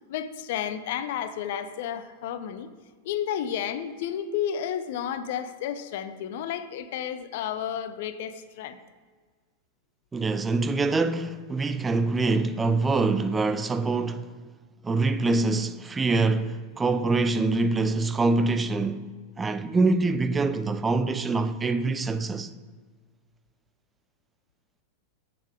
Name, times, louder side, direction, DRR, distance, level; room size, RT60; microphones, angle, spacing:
voice 1, 0.1-2.7 3.0-8.8, left 9 dB, 50° left, 0.6 m, -32 dB
voice 2, 10.1-14.3 14.8-19.1 19.4-22.5, right 3 dB, 15° right, 0.4 m, -25 dB
7.8 x 7.2 x 4.8 m
figure-of-eight pair, 90°, 0 cm